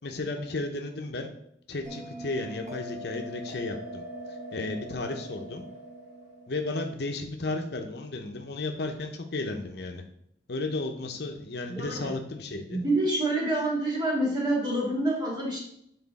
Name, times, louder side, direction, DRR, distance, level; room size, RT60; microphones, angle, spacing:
voice 1, 0.0-1.3 1.7-4.0 4.3-5.6 6.5-10.0 10.5-12.8, left 2 dB, 60° left, 4 dB, 0.8 m, -34 dB
Bell, 1.8-6.9, equal, 40° right, 1.4 m, -41 dB
voice 2, 11.7-12.1 12.7-15.6, right 1 dB, 25° right, -4 dB, 2.3 m, -27 dB
8.4 x 4.0 x 4.1 m, 0.72 s
head